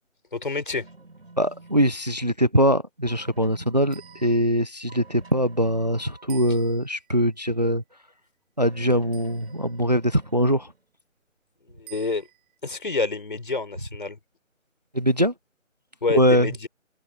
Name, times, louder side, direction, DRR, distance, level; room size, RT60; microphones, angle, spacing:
voice 1, 0.3-0.8 11.8-12.3 12.6-14.2 16.0-16.7, left 3 dB, 40° left, 4.3 m, -28 dB
sound 1, 0.8-2.1 3.1-4.4 4.9-6.3 8.7-10.9, right 3 dB, 50° right, 6.1 m, -49 dB
voice 2, 1.4-7.8 8.6-10.7 14.9-15.3 16.1-16.5, equal, 30° right, 0.9 m, -22 dB
sound 2, 3.9-4.8 6.3-7.1 9.1-9.8 11.9-12.5, right 14 dB, 5° right, 4.7 m, -49 dB
open air
figure-of-eight pair, 180°, 39 cm